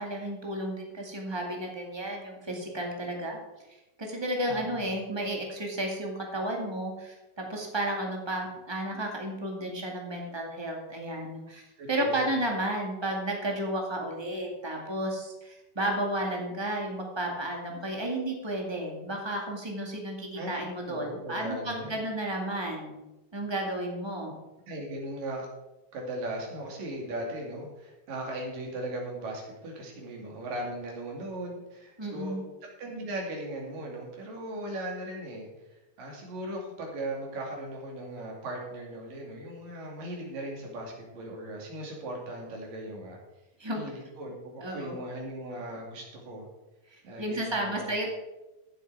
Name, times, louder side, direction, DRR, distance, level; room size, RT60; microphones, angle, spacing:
voice 1, 0.0-3.4 4.0-11.6 11.9-23.0 23.3-24.3 32.0-32.4 43.6-43.8 44.6-45.0 46.9-48.1, right 1 dB, 15° right, 0 dB, 0.9 m, -32 dB
voice 2, 4.5-4.9 11.8-12.3 20.4-22.0 24.3-24.4 24.7-25.5 25.9-32.4 32.6-43.2 43.7-46.5 47.0-47.9, right 1 dB, 65° right, 0 dB, 4.1 m, -38 dB
14.5 x 7.8 x 4.7 m, 1.0 s
omnidirectional pair, 4.2 m